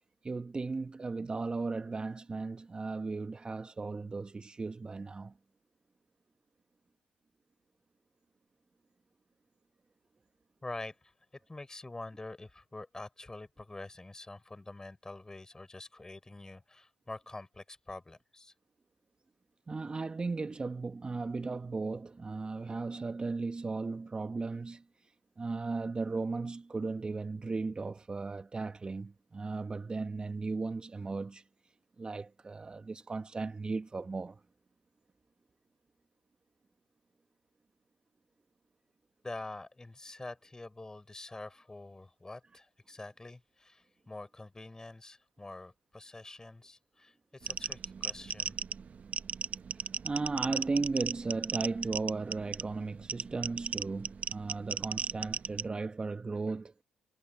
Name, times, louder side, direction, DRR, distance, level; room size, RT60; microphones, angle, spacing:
voice 1, 0.2-5.3 19.7-24.8 25.4-31.4 32.0-34.4 50.0-56.7, right 3 dB, 30° right, 1.3 m, -36 dB
voice 2, 10.6-11.1 11.5-18.5 39.2-48.6, left 2 dB, 20° left, 6.3 m, -46 dB
sound 1, 47.5-55.7, right 6 dB, 45° right, 0.9 m, -37 dB
hypercardioid pair, 55°, 3 cm